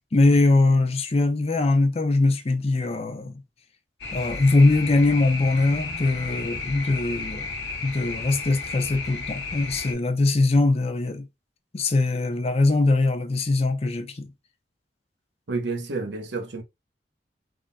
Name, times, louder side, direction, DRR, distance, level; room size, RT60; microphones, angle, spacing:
voice 1, 0.1-3.4 4.1-7.5 7.8-11.3 11.7-14.3, left 2 dB, 35° left, 0.5 m, -21 dB
sound 1, 4.0-9.9, left 3 dB, 80° left, 1.0 m, -33 dB
voice 2, 15.5-16.6, right 3 dB, 85° right, 0.8 m, -29 dB
3.7 x 2.1 x 2.5 m
head